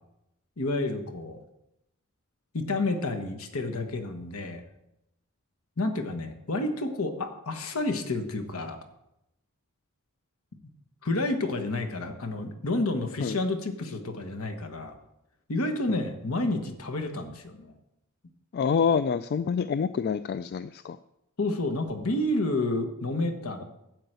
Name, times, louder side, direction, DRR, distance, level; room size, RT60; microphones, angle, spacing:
voice 1, 0.6-1.4 2.5-4.6 5.8-8.8 11.0-15.0 15.5-17.7 21.4-23.6, left 2 dB, 85° left, 6 dB, 1.3 m, -30 dB
voice 2, 18.5-21.0, left 6 dB, 50° left, 13 dB, 0.3 m, -27 dB
12.0 x 4.7 x 8.0 m, 0.87 s
head